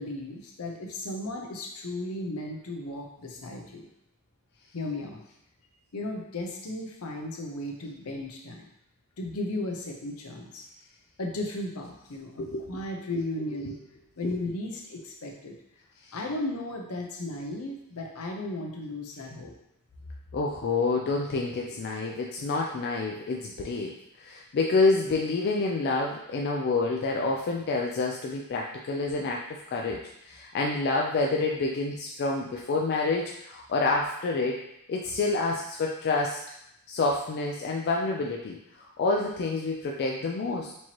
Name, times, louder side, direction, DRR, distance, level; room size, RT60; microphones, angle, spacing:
voice 1, 0.0-3.9 4.7-5.2 5.9-8.7 9.2-10.6 11.2-13.8 14.2-15.6 16.1-19.5, left 1 dB, 75° left, 1 dB, 0.7 m, -35 dB
voice 2, 12.4-12.8 16.1-16.2 20.3-34.6 34.9-36.4 36.9-40.7, left 3 dB, 50° left, -1 dB, 0.3 m, -28 dB
4.5 x 3.0 x 2.9 m, 0.80 s
head